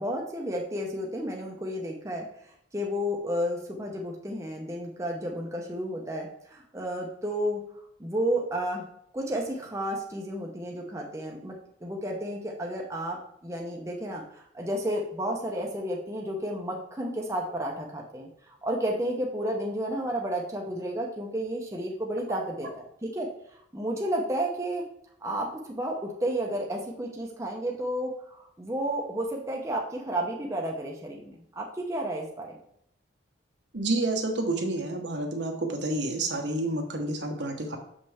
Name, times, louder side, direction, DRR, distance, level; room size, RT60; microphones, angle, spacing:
voice 1, 0.0-2.3 2.7-7.6 8.0-8.8 9.1-11.5 11.8-23.3 23.7-24.8 25.2-32.5, right 1 dB, 15° right, -1 dB, 0.8 m, -32 dB
voice 2, 33.7-37.8, right 2 dB, 60° right, 3 dB, 1.1 m, -29 dB
6.8 x 5.4 x 3.5 m, 0.71 s
head